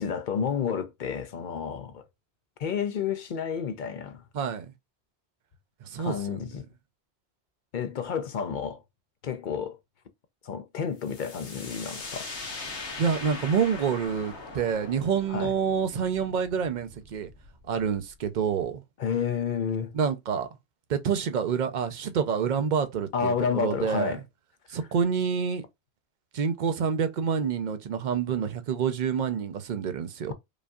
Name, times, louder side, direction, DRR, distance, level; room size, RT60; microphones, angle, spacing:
voice 1, 0.0-2.0 2.6-4.2 6.0-6.6 7.7-8.8 9.2-9.8 10.4-12.3 15.3-15.5 19.0-19.9 23.1-24.2, left 7 dB, 55° left, 0.6 m, -30 dB
voice 2, 4.3-4.7 5.9-6.4 13.0-17.3 17.7-18.8 19.9-20.5 20.9-24.2 24.7-25.6 26.3-30.3, right 7 dB, 50° right, 0.6 m, -27 dB
sound 1, 11.0-18.6, left 3 dB, 80° left, 1.5 m, -41 dB
5.0 x 2.6 x 2.3 m
omnidirectional pair, 1.1 m